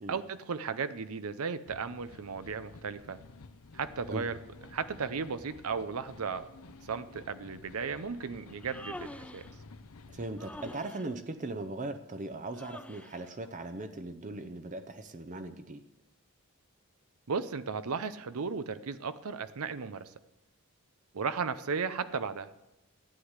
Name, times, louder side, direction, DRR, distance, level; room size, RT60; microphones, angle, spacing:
voice 1, 0.1-3.2 3.7-4.4 4.7-6.5 6.8-9.5 17.3-20.1 21.1-22.5, right 5 dB, 75° right, 13 dB, 0.6 m, -35 dB
sound 1, 1.7-10.8, left 3 dB, 70° left, 0.7 m, -52 dB
Human voice, 8.5-9.5 10.4-11.1 12.5-13.2, left 1 dB, 5° left, 0.5 m, -46 dB
voice 2, 10.1-15.8, right 2 dB, 35° right, 9 dB, 0.7 m, -39 dB
13.5 x 9.7 x 8.1 m, 0.96 s
head